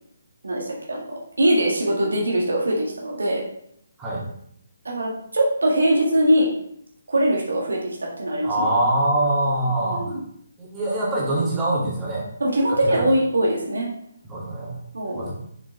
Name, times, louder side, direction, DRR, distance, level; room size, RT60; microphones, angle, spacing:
voice 1, 0.4-1.0 1.4-3.4 4.9-6.5 7.1-8.7 9.8-10.1 12.4-13.9 14.9-15.3, right 1 dB, 75° right, -1 dB, 1.7 m, -22 dB
voice 2, 8.4-10.2 10.6-12.3 12.7-13.2 14.2-14.8 15.1-15.3, right 1 dB, 15° right, -7 dB, 2.5 m, -24 dB
6.7 x 6.0 x 3.4 m, 0.68 s
figure-of-eight pair, 145°, 0 cm